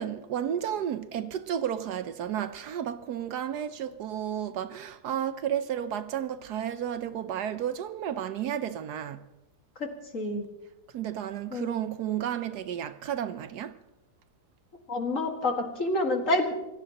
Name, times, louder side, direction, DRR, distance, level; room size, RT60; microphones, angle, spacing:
voice 1, 0.0-9.2 10.9-13.7, right 9 dB, 70° right, 1.2 m, -32 dB
voice 2, 9.8-10.5 11.5-11.7 14.9-16.4, left 1 dB, 45° left, 2.3 m, -28 dB
26.0 x 17.0 x 2.9 m
omnidirectional pair, 1.9 m